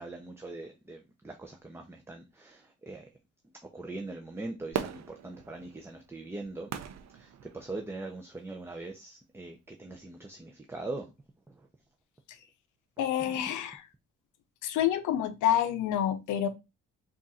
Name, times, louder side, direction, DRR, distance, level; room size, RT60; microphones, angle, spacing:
voice 1, 0.0-3.0 3.7-6.7 7.1-11.1 13.3-13.4, right 2 dB, 10° right, 0.5 m, -41 dB
Fireworks, 4.7-8.1 8.6-8.7, right 8 dB, 60° right, 0.6 m, -39 dB
voice 2, 13.0-13.9 14.6-16.5, left 10 dB, 85° left, 0.6 m, -28 dB
3.6 x 2.5 x 4.1 m
cardioid pair, 90°, 30 cm